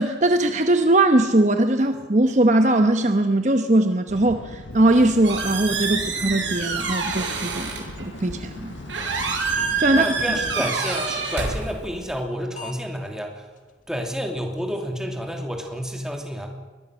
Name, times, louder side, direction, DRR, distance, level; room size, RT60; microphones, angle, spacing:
voice 1, 0.0-8.7 9.8-10.1, right 1 dB, 40° right, 7 dB, 1.0 m, -20 dB
sound 1, 4.1-10.7, left 2 dB, 85° left, 1.4 m, -39 dB
Squeak, 4.7-12.2, right 4 dB, 80° right, 5.7 m, -28 dB
sound 2, 9.6-10.0 10.5-10.6 12.0-12.2 12.5-12.7 13.0-13.1 13.6-13.7 14.1-14.2 14.4-14.8, left 4 dB, 40° left, 2.0 m, -38 dB
voice 2, 9.9-13.4 13.9-16.5, equal, 5° right, 2 dB, 2.7 m, -30 dB
23.0 x 20.5 x 6.4 m, 1.4 s
head